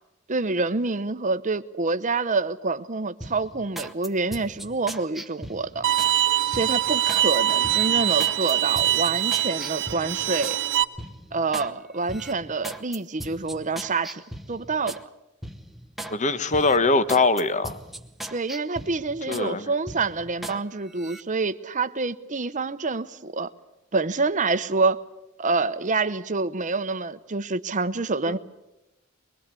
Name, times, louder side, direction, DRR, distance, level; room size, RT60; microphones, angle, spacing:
voice 1, 0.3-5.9 6.5-10.6 11.3-14.2 14.5-15.0 18.3-23.5 23.9-25.0 25.4-28.4, right 3 dB, 35° right, 0.9 m, -27 dB
sound 1, 3.2-6.1 6.5-7.3 7.6-10.6 11.0-11.7 12.1-15.0 15.4-16.2 16.5-19.5 19.9-20.6 20.9-21.2, right 1 dB, ahead, 0.9 m, -39 dB
Bowed string instrument, 5.8-10.8, right 12 dB, 55° right, 1.1 m, -23 dB
voice 2, 16.1-17.8 19.3-19.7 28.3-28.4, left 3 dB, 35° left, 1.0 m, -22 dB
22.5 x 22.0 x 8.4 m
head